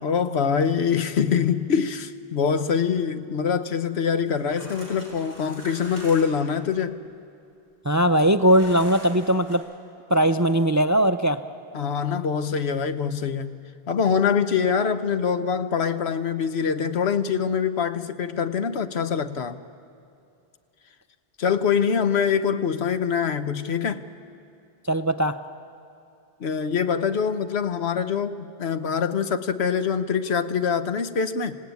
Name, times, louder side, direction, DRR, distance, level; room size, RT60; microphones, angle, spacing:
voice 1, 0.0-7.0 11.7-13.6 13.9-19.6 21.4-24.0 26.4-31.6, left 6 dB, 85° left, 1.2 m, -24 dB
sound 1, 4.3-6.5 8.4-9.6, equal, 45° left, 6.2 m, -43 dB
voice 2, 7.9-9.6 10.1-11.4 24.9-25.4, right 1 dB, 30° right, 0.3 m, -20 dB
26.5 x 17.0 x 9.4 m
omnidirectional pair, 1.1 m